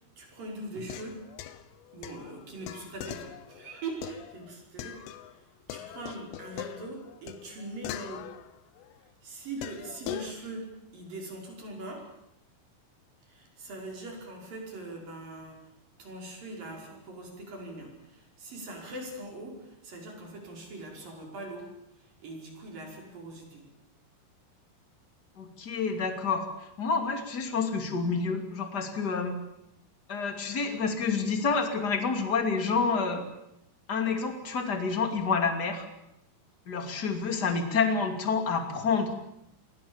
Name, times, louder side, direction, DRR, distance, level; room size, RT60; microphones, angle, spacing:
voice 1, 0.2-1.2 1.9-5.4 5.7-8.3 9.2-12.1 13.2-15.6 16.0-21.7 22.0-23.7, right 2 dB, 45° right, 0 dB, 6.8 m, -42 dB
sound 1, 0.8-5.4 5.7-9.0 9.6-10.3, left 12 dB, 85° left, 3.7 m, -42 dB
voice 2, 25.4-26.5 26.8-29.4 30.1-33.2 33.9-35.9 36.7-39.1, left 5 dB, 30° left, 6 dB, 2.0 m, -28 dB
28.5 x 22.0 x 7.2 m, 0.82 s
omnidirectional pair, 5.7 m